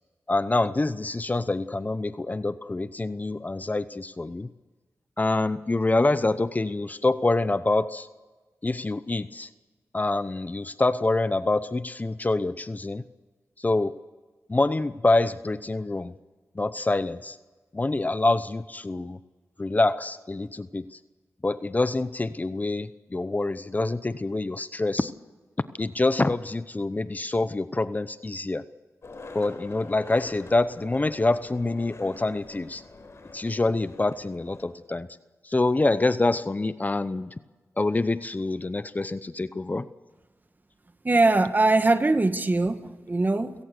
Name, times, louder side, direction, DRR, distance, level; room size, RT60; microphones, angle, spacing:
voice 1, 0.3-4.5 5.2-8.1 8.6-9.5 9.9-13.0 13.6-13.9 14.5-16.1 16.6-17.4 17.7-19.2 19.6-20.9 21.4-25.1 25.8-28.6 29.3-32.8 33.3-35.1 35.4-37.3 37.8-39.9, left 2 dB, 30° left, 14 dB, 0.8 m, -26 dB
Skateboard, 29.0-34.7, left 3 dB, 55° left, 4.5 m, -45 dB
voice 2, 41.0-43.6, right 2 dB, 35° right, 9 dB, 1.8 m, -22 dB
29.5 x 17.0 x 6.8 m, 1.3 s
cardioid pair, 55°, 5 cm